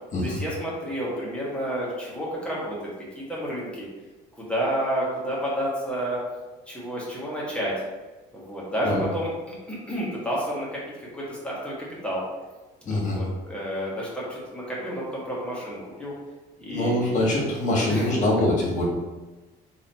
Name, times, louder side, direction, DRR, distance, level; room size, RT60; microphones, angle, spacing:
voice 1, 0.2-2.8 3.1-3.9 4.4-6.2 6.7-7.7 8.3-12.2 12.8-16.1 16.6-17.3 17.9-18.1, equal, 5° left, -6 dB, 1.2 m, -30 dB
voice 2, 12.8-13.2 16.7-18.9, left 1 dB, 45° left, -3 dB, 1.4 m, -24 dB
3.1 x 2.7 x 4.1 m, 1.2 s
cardioid pair, 110°, 17 cm